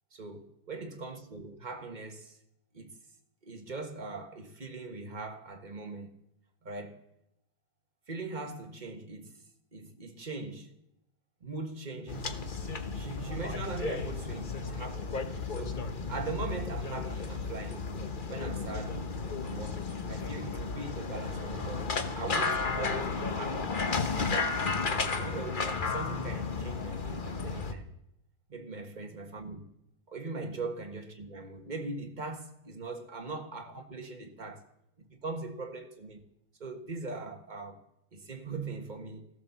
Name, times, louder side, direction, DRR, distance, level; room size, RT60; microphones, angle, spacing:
voice 1, 0.1-2.4 2.7-2.9 3.4-6.1 6.6-7.0 8.1-9.4 9.7-10.7 11.4-12.4 12.9-15.2 15.5-17.9 18.3-19.0 19.4-23.7 24.3-24.6 25.2-27.8 28.5-29.6 30.1-34.6 35.0-36.2 36.6-37.8 38.1-39.3, right 3 dB, 25° right, 1.4 m, -40 dB
sound 1, 12.1-27.7, left 4 dB, 35° left, 0.8 m, -33 dB
16.0 x 12.0 x 7.1 m
omnidirectional pair, 2.2 m